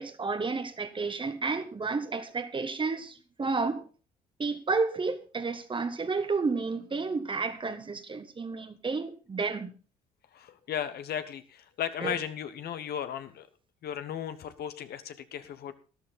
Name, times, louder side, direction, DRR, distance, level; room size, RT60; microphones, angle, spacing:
voice 1, 0.0-3.9 4.4-9.7 12.0-12.2, right 4 dB, 30° right, 1.5 m, -31 dB
voice 2, 10.3-13.5 13.8-15.7, left 9 dB, 65° left, 1.2 m, -36 dB
13.0 x 11.0 x 4.0 m
supercardioid pair, 75°, 18 cm